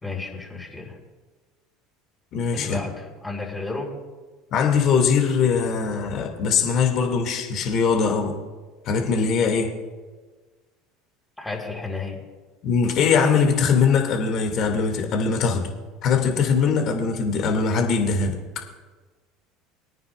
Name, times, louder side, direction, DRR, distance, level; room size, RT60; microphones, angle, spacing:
voice 1, 0.0-1.0 2.5-4.0 11.4-12.2, left 3 dB, 10° left, -2 dB, 3.8 m, -32 dB
voice 2, 2.3-2.8 4.5-8.4 8.9-9.7 12.6-15.7 16.0-18.6, left 5 dB, 55° left, 3 dB, 2.3 m, -21 dB
22.5 x 9.4 x 2.5 m, 1.3 s
hypercardioid pair, 70°, 0 cm